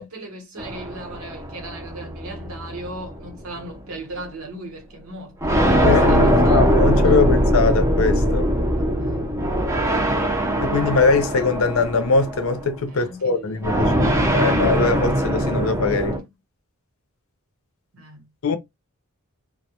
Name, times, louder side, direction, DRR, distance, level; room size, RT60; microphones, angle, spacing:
voice 1, 0.0-7.3 8.8-8.9 12.9-13.6 16.1-16.3 17.9-18.3, right 1 dB, 70° right, 0.9 m, -37 dB
sound 1, 0.6-3.3 4.2-4.3 5.4-12.7 13.6-16.2, equal, 15° right, 0.5 m, -21 dB
voice 2, 5.8-8.5 10.6-16.2 18.4-18.6, left 4 dB, 65° left, 0.5 m, -21 dB
2.2 x 2.0 x 2.8 m
head